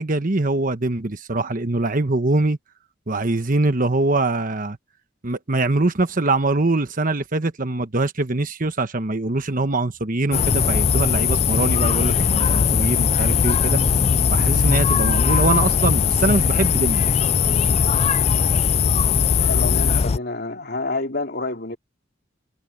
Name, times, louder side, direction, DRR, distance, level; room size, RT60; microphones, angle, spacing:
voice 1, 0.0-2.6 3.1-4.8 5.2-13.8 14.3-17.1, right 2 dB, 40° right, 1.2 m, -23 dB
sound 1, 10.3-20.2, left 6 dB, 30° left, 0.3 m, -19 dB
voice 2, 19.4-21.8, left 2 dB, 50° left, 3.5 m, -28 dB
head